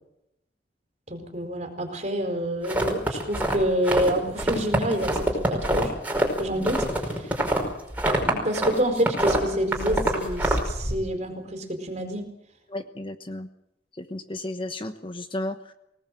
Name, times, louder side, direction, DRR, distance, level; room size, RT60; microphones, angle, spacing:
voice 1, 1.1-5.9 6.4-6.9 8.2-12.3, equal, 35° right, 5 dB, 4.6 m, -27 dB
sound 1, 2.6-4.1 4.4-8.7 9.0-10.9, right 1 dB, 10° right, 5.2 m, -25 dB
voice 2, 12.7-13.5 14.0-15.7, left 1 dB, 25° left, 8 dB, 1.2 m, -33 dB
25.5 x 19.0 x 7.7 m, 0.83 s
head